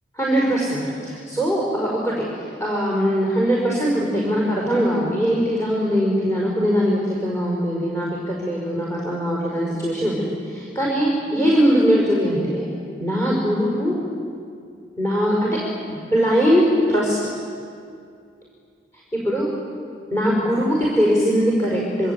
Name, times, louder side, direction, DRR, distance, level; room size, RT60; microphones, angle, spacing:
voice 1, 0.2-2.2 2.6-12.7 13.0-14.0 15.0-15.5 16.1-17.2 19.1-19.5 20.1-22.1, equal, 15° left, -4 dB, 5.5 m, -21 dB
26.0 x 25.0 x 8.6 m, 2.3 s
head